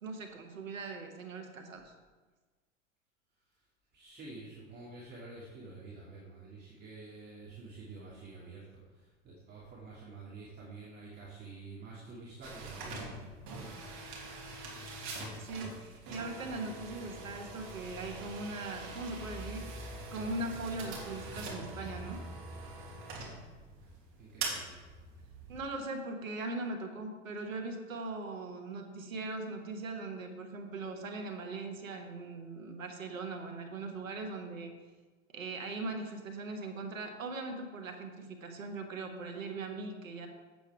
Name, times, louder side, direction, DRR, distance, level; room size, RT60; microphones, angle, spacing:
voice 1, 0.0-1.9 14.2-14.3 15.4-19.7 20.1-22.2 25.5-34.7 35.3-40.3, right 3 dB, 85° right, 5 dB, 1.7 m, -40 dB
voice 2, 3.9-8.6 8.9-13.7 24.1-24.9, right 3 dB, 25° right, -7 dB, 2.6 m, -49 dB
sound 1, 12.4-25.7, right 2 dB, 45° right, 2.9 m, -43 dB
8.2 x 8.2 x 4.8 m, 1.3 s
hypercardioid pair, 100°, 39 cm